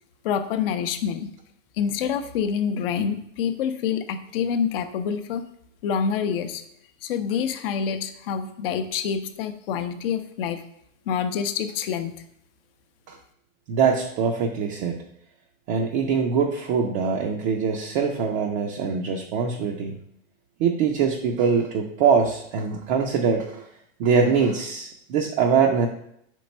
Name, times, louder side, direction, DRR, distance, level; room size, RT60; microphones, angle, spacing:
voice 1, 0.2-1.3 1.8-5.4 5.8-6.6 7.0-10.6 11.1-12.1, left 7 dB, 45° left, 9 dB, 0.6 m, -27 dB
voice 2, 13.7-15.0 15.7-19.9 20.6-23.7 24.0-25.9, right 6 dB, 30° right, 1 dB, 0.5 m, -23 dB
5.0 x 4.6 x 5.3 m, 0.74 s
hypercardioid pair, 140°, 41 cm